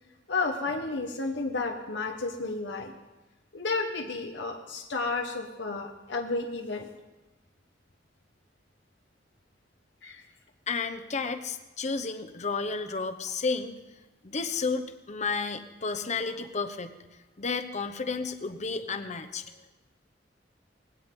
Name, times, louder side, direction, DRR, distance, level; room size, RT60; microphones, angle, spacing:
voice 1, 0.3-2.9 3.5-6.9 10.0-10.2, left 3 dB, 75° left, 3 dB, 1.1 m, -32 dB
voice 2, 10.7-13.7 14.2-17.0 17.4-19.4, left 4 dB, 40° left, 8 dB, 1.0 m, -32 dB
19.5 x 17.0 x 3.8 m, 1.1 s
head